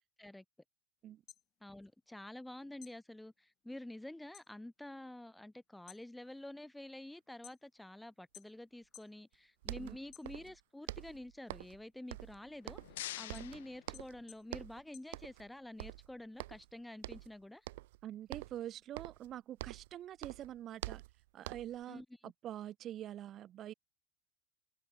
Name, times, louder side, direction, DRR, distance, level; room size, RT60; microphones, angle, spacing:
sound 1, 1.1-2.5 2.8-4.5 4.9-5.3 5.7-7.9 8.3-9.2 9.6-10.8 11.2-15.7, left 11 dB, 35° left, 2.2 m, -60 dB
voice 1, 1.6-12.8 13.1-17.7 21.9-22.1, left 1 dB, 5° left, 1.3 m, -49 dB
sound 2, 9.3-9.4 9.6-10.6 10.9-11.8 12.1-13.0 13.3-14.2 14.5-14.8 15.1-15.5 15.8-16.7 17.0-17.3 17.7-18.0 18.3-19.9 20.2-21.8, right 19 dB, 70° right, 1.9 m, -46 dB
sound 3, 12.4-14.6, left 15 dB, 80° left, 0.5 m, -48 dB
voice 2, 18.0-21.0 21.3-23.7, right 11 dB, 35° right, 1.2 m, -45 dB
supercardioid pair, 125°, 0 cm